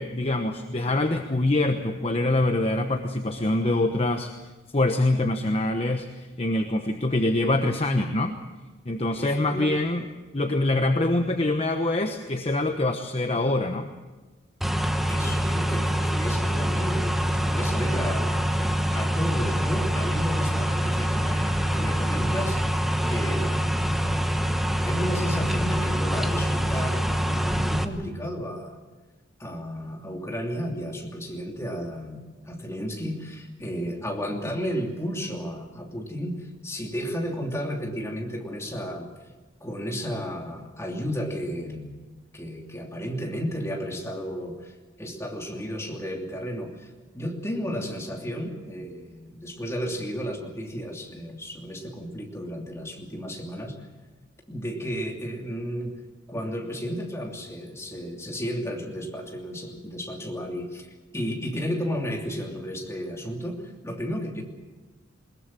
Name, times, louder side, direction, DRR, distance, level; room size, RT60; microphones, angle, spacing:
voice 1, 0.0-4.3 4.7-8.4 8.9-10.0 10.3-13.9, left 2 dB, 30° left, 6 dB, 1.0 m, -24 dB
voice 2, 9.2-9.8 15.1-18.4 18.9-22.7 23.1-24.2 24.8-28.8 29.4-39.1 39.6-53.8 54.5-55.9 56.3-60.9 61.1-64.4, equal, 15° left, 0 dB, 2.9 m, -33 dB
sound 1, 14.6-27.8, equal, ahead, 1.1 m, -25 dB
21.5 x 21.0 x 7.5 m, 1.2 s
head